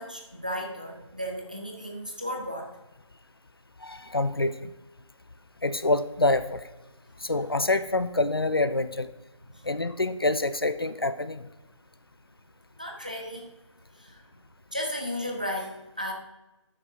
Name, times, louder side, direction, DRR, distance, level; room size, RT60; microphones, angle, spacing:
voice 1, 0.0-2.7 9.5-9.7 12.8-13.5 13.9-14.2 14.7-16.1, equal, 15° right, 1 dB, 0.6 m, -34 dB
voice 2, 3.8-4.7 5.6-6.6 7.2-9.1 9.6-11.4, left 2 dB, 50° left, 13 dB, 0.5 m, -26 dB
13.0 x 6.5 x 3.6 m, 1.1 s
figure-of-eight pair, 175°, 16 cm